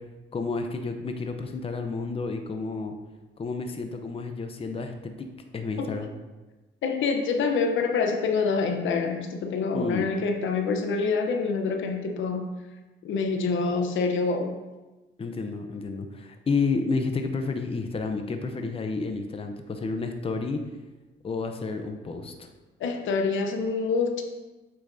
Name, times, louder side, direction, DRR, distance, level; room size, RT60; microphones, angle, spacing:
voice 1, 0.3-2.9 3.4-5.3 5.5-6.1 9.7-10.1 15.2-20.6 21.2-22.5, left 4 dB, 30° left, 6 dB, 0.7 m, -30 dB
voice 2, 6.8-12.5 13.0-14.5 22.8-24.2, left 4 dB, 75° left, 5 dB, 0.8 m, -26 dB
8.3 x 5.6 x 2.7 m, 1.1 s
cardioid pair, 90°, 20 cm